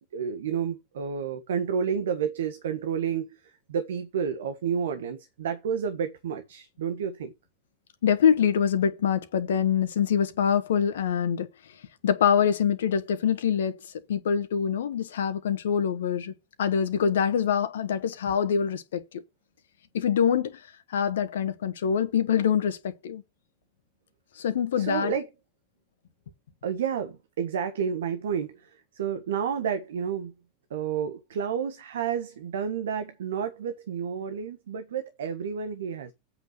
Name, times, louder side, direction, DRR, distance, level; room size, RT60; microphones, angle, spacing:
voice 1, 0.1-3.4 3.7-7.3 24.8-25.3 26.6-30.3 30.7-36.1, right 7 dB, 70° right, 1.4 m, -30 dB
voice 2, 8.0-11.5 12.0-13.8 14.1-19.0 19.9-20.6 20.9-23.2 24.4-25.1, left 8 dB, 70° left, 1.4 m, -25 dB
8.4 x 6.0 x 6.7 m
figure-of-eight pair, 90°, 0 cm